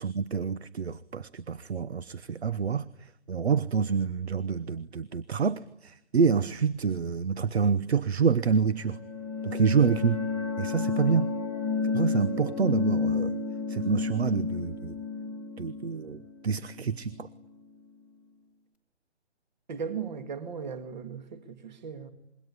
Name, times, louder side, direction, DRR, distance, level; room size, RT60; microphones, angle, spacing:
voice 1, 0.0-9.0 9.4-10.2 10.6-11.3 11.9-13.3 13.7-15.0 15.6-17.3, right 6 dB, 70° right, 1.2 m, -27 dB
sound 1, 8.8-17.3, left 4 dB, 5° right, 1.5 m, -31 dB
voice 2, 19.7-22.1, right 6 dB, 40° right, 2.5 m, -37 dB
25.5 x 22.5 x 9.9 m
hypercardioid pair, 165°, 33 cm